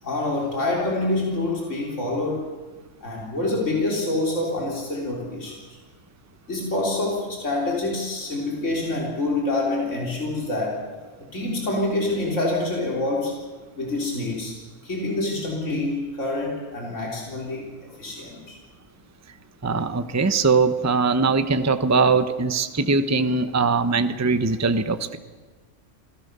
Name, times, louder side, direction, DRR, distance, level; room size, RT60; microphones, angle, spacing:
voice 1, 0.0-2.5 3.0-5.6 6.5-10.9 11.3-13.4 13.7-14.6 14.8-18.6, left 2 dB, 70° left, -2 dB, 4.3 m, -26 dB
voice 2, 19.6-25.2, right 4 dB, 15° right, 10 dB, 0.8 m, -21 dB
27.5 x 17.5 x 6.8 m, 1.4 s
omnidirectional pair, 1.3 m